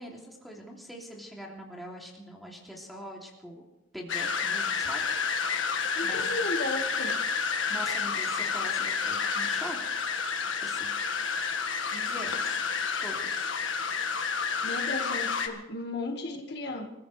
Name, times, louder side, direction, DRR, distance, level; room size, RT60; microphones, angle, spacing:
voice 1, 0.0-3.6 3.9-5.0 6.0-6.2 7.7-10.0 10.6-10.9 11.8-12.6 13.0-13.5, equal, ahead, -3 dB, 2.9 m, -43 dB
sound 1, 4.1-15.5, left 5 dB, 70° left, 1.7 m, -30 dB
voice 2, 6.0-7.2 14.6-16.9, left 2 dB, 55° left, 3 dB, 1.8 m, -34 dB
28.5 x 14.5 x 3.4 m, 0.96 s
head